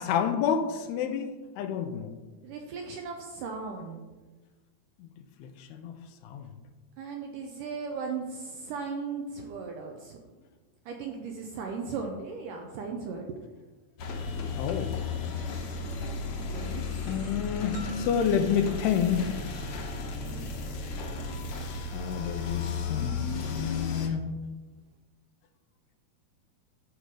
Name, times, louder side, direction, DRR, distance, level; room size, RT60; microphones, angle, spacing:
voice 1, 0.0-2.1 5.4-5.9 6.3-6.5 14.5-14.9 17.1-19.3 21.9-24.3, left 8 dB, 90° left, 7 dB, 2.8 m, -29 dB
voice 2, 2.4-4.0 7.0-10.2 10.9-13.4 16.4-17.3 20.2-20.5, right 5 dB, 80° right, 2 dB, 2.0 m, -37 dB
sound 1, 14.0-24.1, left 4 dB, 65° left, 1.8 m, -34 dB
sound 2, 17.7-20.4, right 1 dB, 60° right, 1.6 m, -42 dB
12.5 x 5.1 x 4.8 m, 1.2 s
omnidirectional pair, 4.6 m